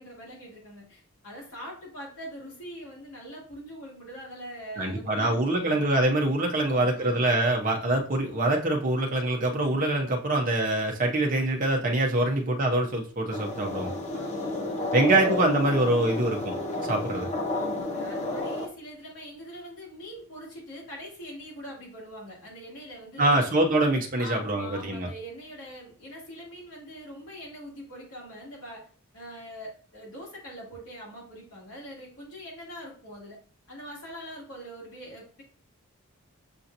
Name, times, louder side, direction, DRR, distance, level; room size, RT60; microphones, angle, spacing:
voice 1, 0.0-5.9 6.6-7.3 12.2-12.4 14.1-15.3 16.7-17.0 17.5-23.4 24.2-28.9 29.1-33.4 33.7-35.4, equal, 85° left, -4 dB, 2.3 m, -43 dB
voice 2, 4.8-13.9 14.9-16.5 16.9-17.3 23.2-25.1, right 2 dB, 40° right, 1 dB, 0.7 m, -24 dB
sound 1, 13.3-18.7, left 2 dB, 30° left, 0.6 m, -31 dB
6.9 x 2.8 x 2.6 m, 0.40 s
head